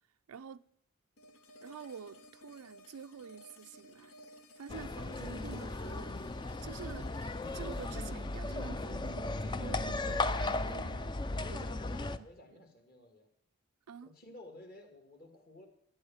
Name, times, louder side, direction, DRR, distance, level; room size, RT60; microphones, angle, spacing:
voice 1, 0.3-0.6 1.6-4.1 4.6-6.3 6.6-7.1 7.5-11.2 11.5-11.7 12.2-12.3 12.5-12.6 13.9-14.1, right 6 dB, 90° right, 0.4 m, -48 dB
sound 1, 1.2-10.2, equal, 75° left, 1.4 m, -56 dB
sound 2, 4.7-12.2, left 2 dB, 20° left, 0.4 m, -36 dB
voice 2, 11.3-13.3 14.0-15.7, left 1 dB, 45° left, 2.2 m, -53 dB
13.0 x 9.4 x 7.2 m
head